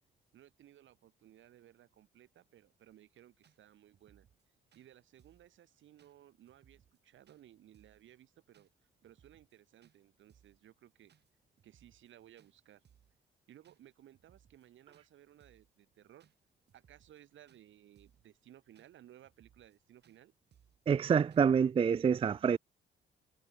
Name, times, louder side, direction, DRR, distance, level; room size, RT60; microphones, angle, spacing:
voice 1, 0.3-4.3 4.7-8.7 9.0-11.1 11.6-12.8 13.5-16.3 16.7-20.3, right 12 dB, 75° right, 4.3 m, -60 dB
sound 1, 2.9-3.0 3.4-3.6 3.9-4.4 4.7-4.9 5.2-5.5 6.0-6.1 6.5-7.0 7.3-7.4 7.7-8.0 8.5-8.7 9.0-9.5 9.8-10.0 10.3-10.6 11.1-11.3 11.6-12.1 12.4-12.5 12.8-13.2 13.6-13.8 14.1-14.7 14.9-15.1 15.4-15.7 16.2-16.3 16.7-17.2 17.5-17.6 18.0-18.3 18.7-18.9 19.2-19.8 20.0-20.2 20.5-20.8 21.3-21.5, right 8 dB, 60° right, 7.7 m, -67 dB
voice 2, 20.9-22.6, right 7 dB, 30° right, 0.4 m, -27 dB
cardioid pair, 90°, 20 cm